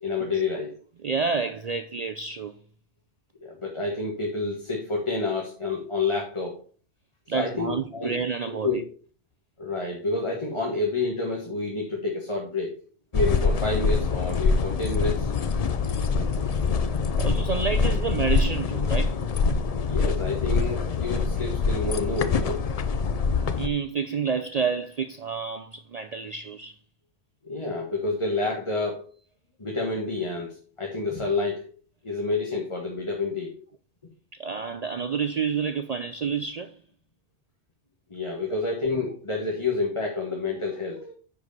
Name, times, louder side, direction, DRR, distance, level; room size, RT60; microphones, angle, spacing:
voice 1, 0.0-0.7 3.4-6.6 7.3-8.1 8.4-8.9 9.6-12.7 13.1-15.3 19.9-22.6 27.4-29.1 29.6-31.7 32.0-33.6 38.1-41.1, left 3 dB, 25° left, 1.4 m, -29 dB
voice 2, 1.0-2.6 7.3-8.8 17.2-19.2 23.6-26.7 34.4-36.7, right 5 dB, 50° right, 0.5 m, -29 dB
sound 1, 13.1-23.7, left 5 dB, 50° left, 0.5 m, -25 dB
10.0 x 4.8 x 4.1 m
omnidirectional pair, 1.1 m